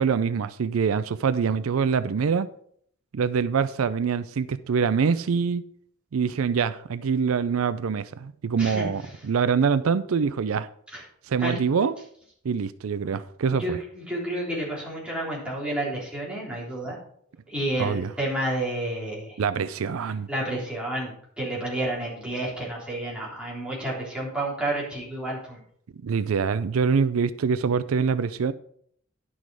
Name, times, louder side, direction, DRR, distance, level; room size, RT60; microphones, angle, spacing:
voice 1, 0.0-2.5 3.1-5.6 6.1-10.7 11.3-12.0 12.4-13.8 17.8-18.1 19.4-20.3 26.0-28.5, right 6 dB, 85° right, 0.4 m, -24 dB
voice 2, 13.6-17.0 17.5-19.4 20.3-21.1 21.4-25.6, right 1 dB, 5° right, 3.5 m, -30 dB
10.5 x 6.2 x 4.8 m
head